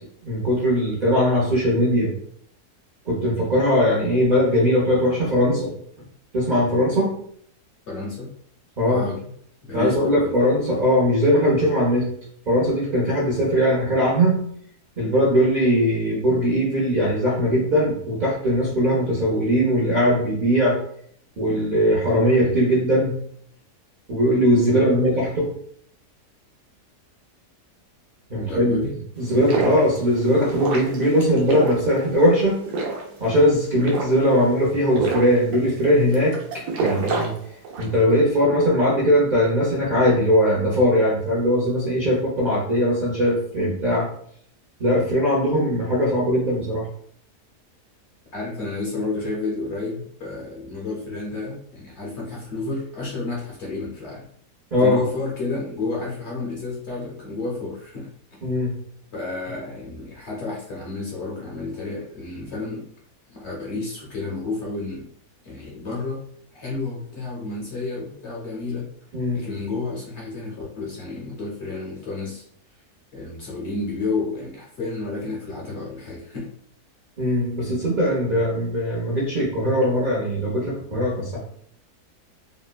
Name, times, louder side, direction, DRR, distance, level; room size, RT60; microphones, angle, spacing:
voice 1, 0.2-2.1 3.1-5.7 6.3-7.2 8.8-9.0 9.7-12.1 12.5-14.5 15.0-20.8 21.4-23.2 24.1-25.5 28.3-28.8 29.2-32.6 33.2-37.3 37.8-44.1 44.8-46.9 54.7-55.0 58.4-58.7 69.1-69.4 77.2-81.4, equal, 50° right, -8 dB, 0.5 m, -20 dB
voice 2, 7.9-8.3 8.9-9.2 9.6-10.3 24.7-25.2 28.4-28.9 48.3-54.2 54.8-58.1 59.1-62.8 63.3-65.1 65.4-66.2 66.5-68.9 69.3-72.4 73.1-76.5, left 3 dB, 60° left, -4 dB, 0.8 m, -31 dB
sound 1, 29.2-38.0, right 4 dB, 85° right, 1.2 m, -29 dB
3.1 x 2.2 x 2.3 m, 0.64 s
omnidirectional pair, 1.7 m